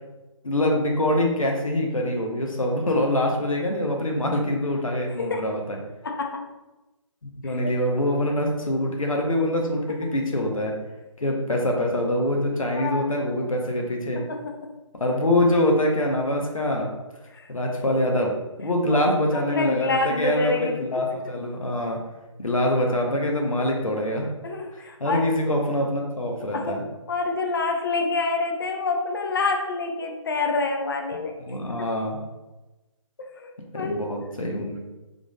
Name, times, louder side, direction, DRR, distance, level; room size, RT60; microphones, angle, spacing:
voice 1, 0.4-5.8 7.3-10.7 11.2-14.2 15.0-16.9 17.5-22.0 22.4-24.3 24.7-26.8 31.5-32.2 33.7-34.8, left 1 dB, 80° left, 0 dB, 0.7 m, -24 dB
voice 2, 6.0-6.4 7.4-7.6 12.7-13.2 14.1-14.7 17.3-17.5 18.9-19.0 19.3-20.9 24.4-25.3 26.5-26.8 27.1-31.3 33.3-34.0, left 3 dB, 40° left, 3 dB, 0.5 m, -27 dB
3.6 x 3.5 x 2.4 m, 1.1 s
figure-of-eight pair, 140°, 17 cm